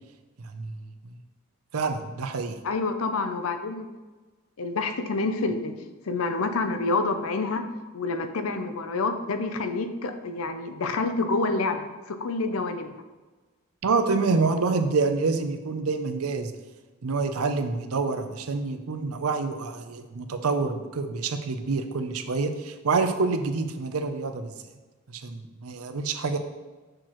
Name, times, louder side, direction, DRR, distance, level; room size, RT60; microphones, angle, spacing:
voice 1, 0.4-0.7 1.7-2.6 13.8-16.5 17.0-24.5 25.1-26.4, right 4 dB, 90° right, 8 dB, 0.6 m, -27 dB
voice 2, 2.6-3.9 4.6-5.7 6.1-7.6 7.9-12.9, left 3 dB, 75° left, 8 dB, 0.6 m, -28 dB
6.6 x 6.1 x 3.0 m, 1.2 s
head